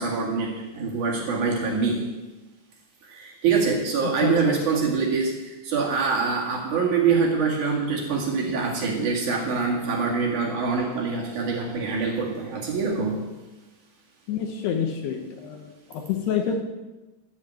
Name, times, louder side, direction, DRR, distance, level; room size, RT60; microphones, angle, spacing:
voice 1, 0.0-2.1 3.1-13.3, right 5 dB, 50° right, -2 dB, 3.1 m, -25 dB
voice 2, 4.2-4.6 14.3-16.6, left 7 dB, 75° left, 3 dB, 2.9 m, -28 dB
12.0 x 7.4 x 8.8 m, 1.1 s
omnidirectional pair, 5.0 m